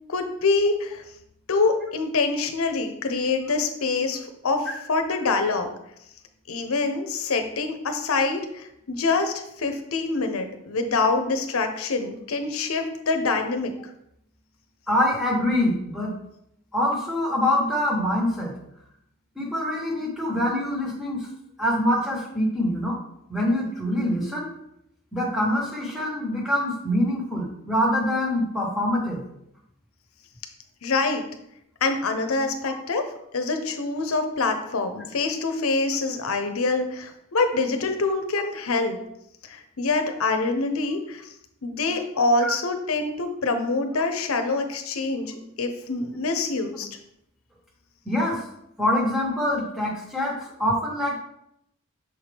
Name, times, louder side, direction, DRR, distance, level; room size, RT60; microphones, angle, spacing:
voice 1, 0.1-1.0 1.5-4.2 4.4-5.7 6.5-9.3 9.6-13.7 30.8-31.2 31.8-33.0 33.3-39.0 39.5-41.2 41.6-46.9, left 3 dB, 90° left, 6 dB, 0.7 m, -25 dB
voice 2, 14.9-16.1 16.7-18.5 19.3-21.3 21.6-23.0 23.3-24.5 25.1-29.2 32.6-32.7 38.0-38.1 42.4-42.5 48.0-48.4 48.8-51.2, left 1 dB, ahead, -2 dB, 1.3 m, -25 dB
6.5 x 4.3 x 3.4 m, 0.77 s
head